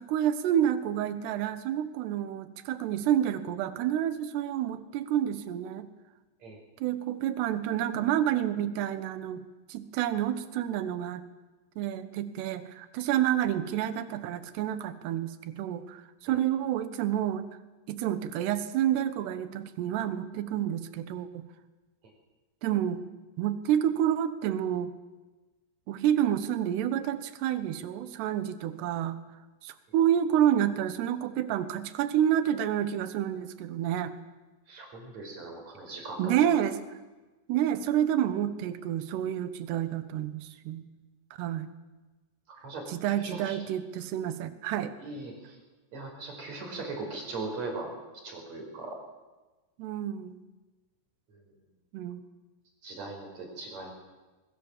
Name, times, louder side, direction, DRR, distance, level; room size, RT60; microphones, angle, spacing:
voice 1, 0.0-5.9 6.8-9.4 9.7-11.2 11.8-17.5 17.9-21.4 22.6-23.0 23.4-24.9 25.9-29.2 29.6-34.1 36.2-36.8 37.5-40.8 41.3-41.7 42.9-44.9 49.8-50.4 51.9-52.2, right 10 dB, 70° right, 12 dB, 3.1 m, -29 dB
voice 2, 34.7-36.3 42.5-43.7 45.0-45.6 45.9-47.9 48.2-49.0 51.3-51.4 52.8-53.9, right 3 dB, 35° right, 2 dB, 5.9 m, -39 dB
23.5 x 22.5 x 7.4 m, 1.2 s
omnidirectional pair, 5.5 m